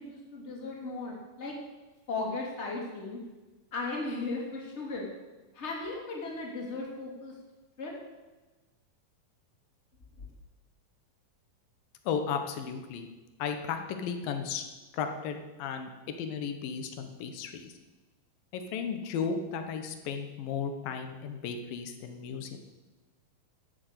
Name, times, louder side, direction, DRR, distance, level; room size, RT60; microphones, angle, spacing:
voice 1, 0.0-1.5 2.1-3.2 3.7-5.1 5.5-7.3 7.8-7.9 10.2-10.3, left 3 dB, 20° left, -2 dB, 2.6 m, -36 dB
voice 2, 12.1-13.1 13.4-14.7 14.9-17.7 18.5-22.6, left 6 dB, 75° left, 6 dB, 2.9 m, -35 dB
13.0 x 7.2 x 8.3 m, 1.2 s
omnidirectional pair, 4.2 m